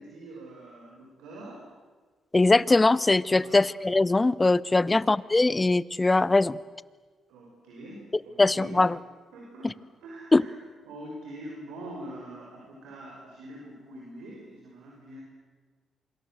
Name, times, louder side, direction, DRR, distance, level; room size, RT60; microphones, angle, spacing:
voice 1, 0.0-1.6 3.3-3.7 4.8-5.1 7.3-8.9 9.3-10.6 10.8-15.2, right 1 dB, 90° right, -2 dB, 5.9 m, -44 dB
voice 2, 2.3-6.6 8.4-9.0 10.3-10.4, left 2 dB, 25° left, 20 dB, 0.9 m, -21 dB
27.5 x 25.5 x 7.8 m, 1.4 s
supercardioid pair, 60°, 0 cm